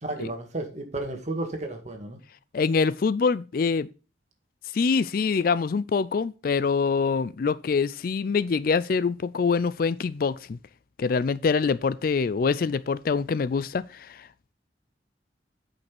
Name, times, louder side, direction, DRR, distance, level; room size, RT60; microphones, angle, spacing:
voice 1, 0.0-2.2, right 2 dB, 40° right, 1.8 m, -33 dB
voice 2, 2.5-3.9 4.7-10.6 11.0-14.3, left 5 dB, 50° left, 0.4 m, -25 dB
8.8 x 5.4 x 6.0 m
head